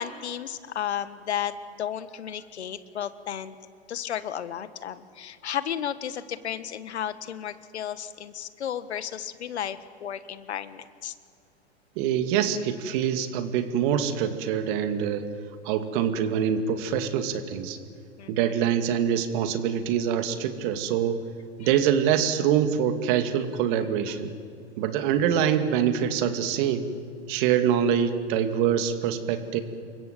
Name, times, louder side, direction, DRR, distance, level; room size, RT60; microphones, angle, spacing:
voice 1, 0.0-3.5 3.9-11.1 18.2-18.6 21.6-21.7, left 9 dB, 70° left, 13 dB, 1.5 m, -33 dB
voice 2, 12.0-15.3 15.6-17.8 18.3-21.2 21.6-24.3 24.8-26.9 27.3-29.6, right 8 dB, 45° right, 8 dB, 2.5 m, -25 dB
28.5 x 24.0 x 7.7 m, 2.2 s
hypercardioid pair, 105°, 34 cm